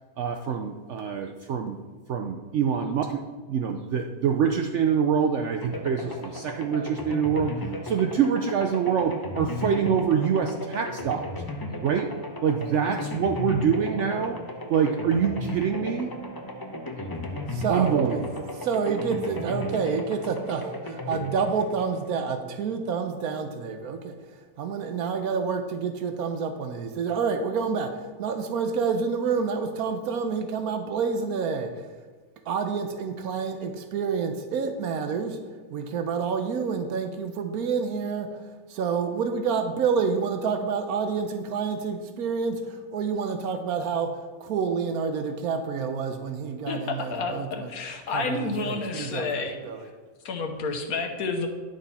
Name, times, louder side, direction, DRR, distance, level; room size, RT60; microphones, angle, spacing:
voice 1, 0.2-1.8 2.1-3.2 3.5-7.5 7.8-11.2 11.8-12.1 12.4-14.4 14.7-16.1 17.7-18.6, right 7 dB, 65° right, 5 dB, 0.8 m, -25 dB
sound 1, 5.6-22.5, left 1 dB, 20° left, 0.7 m, -35 dB
voice 2, 17.5-18.2 18.6-24.2 24.6-31.9 32.5-35.4 35.7-47.7 48.1-49.9, right 5 dB, 90° right, 7 dB, 1.2 m, -28 dB
voice 3, 46.7-49.6 50.2-51.5, left 3 dB, 85° left, 5 dB, 1.5 m, -30 dB
11.0 x 6.4 x 4.2 m, 1.4 s
omnidirectional pair, 1.5 m